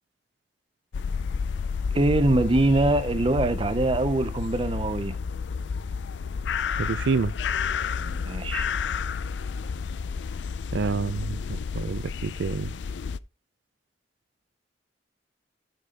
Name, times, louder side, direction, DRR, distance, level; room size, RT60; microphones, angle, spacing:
sound 1, 0.9-13.2, left 6 dB, 90° left, 0.4 m, -31 dB
voice 1, 1.9-5.2 8.0-8.7, right 2 dB, 30° right, 0.5 m, -23 dB
voice 2, 6.8-7.3 10.7-12.7, right 4 dB, 90° right, 0.4 m, -28 dB
13.0 x 5.4 x 2.9 m
head